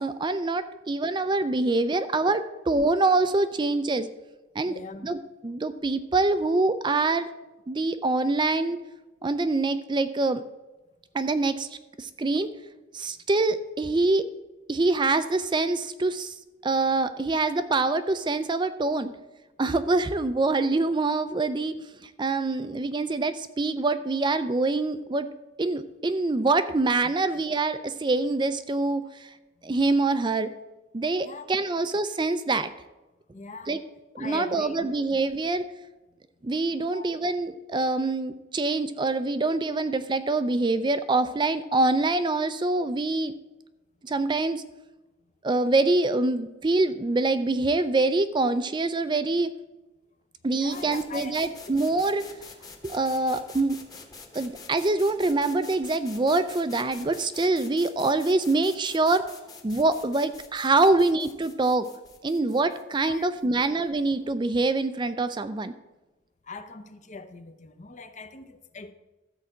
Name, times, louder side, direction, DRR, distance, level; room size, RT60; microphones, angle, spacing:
voice 1, 0.0-4.1 4.6-4.7 5.0-5.2 5.4-7.3 7.7-8.8 9.2-10.4 11.1-11.7 12.0-12.5 12.9-14.2 14.7-16.3 16.6-19.1 19.6-21.8 22.2-25.3 25.6-29.3 29.6-30.5 30.9-32.7 33.7-33.8 34.1-35.6 36.4-43.3 44.0-44.6 45.4-49.5 50.4-52.3 52.8-53.8 54.3-59.3 59.6-61.9 62.2-65.7, right 3 dB, 25° right, 11 dB, 0.4 m, -25 dB
voice 2, 4.6-5.1 27.0-27.2 29.6-29.7 31.2-31.5 33.3-33.8 34.2-35.0 36.8-37.1 50.5-51.4 51.9-52.0 63.0-63.6 66.4-68.9, left 4 dB, 40° left, 10 dB, 0.7 m, -42 dB
sound 1, 50.7-64.4, left 4 dB, 20° left, 1.2 m, -47 dB
13.0 x 4.8 x 7.7 m, 1.0 s
head